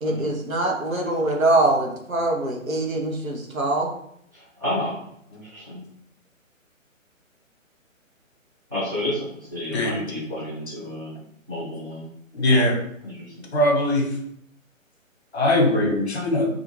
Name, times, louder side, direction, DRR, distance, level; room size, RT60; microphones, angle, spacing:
voice 1, 0.0-3.9, right 2 dB, 85° right, 0 dB, 0.8 m, -23 dB
voice 2, 4.3-5.0 5.3-5.9 8.7-11.1 11.5-12.1 13.0-13.3, left 1 dB, 15° right, -11 dB, 0.5 m, -31 dB
voice 3, 12.3-12.7 13.5-14.0 15.3-16.5, left 1 dB, 55° left, 0 dB, 0.8 m, -20 dB
2.4 x 2.4 x 3.1 m, 0.72 s
figure-of-eight pair, 140°, 40 cm